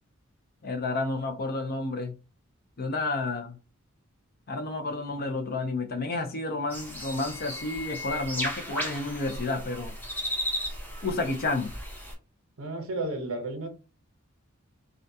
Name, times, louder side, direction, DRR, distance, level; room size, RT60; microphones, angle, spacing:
voice 1, 0.6-2.1 2.8-3.6 4.5-9.9 11.0-11.7, left 3 dB, 45° left, 0.5 m, -30 dB
sound 1, 6.7-12.1, equal, 10° left, 0.6 m, -35 dB
voice 2, 12.6-13.7, right 2 dB, 80° right, 0.7 m, -32 dB
2.4 x 2.2 x 2.6 m
head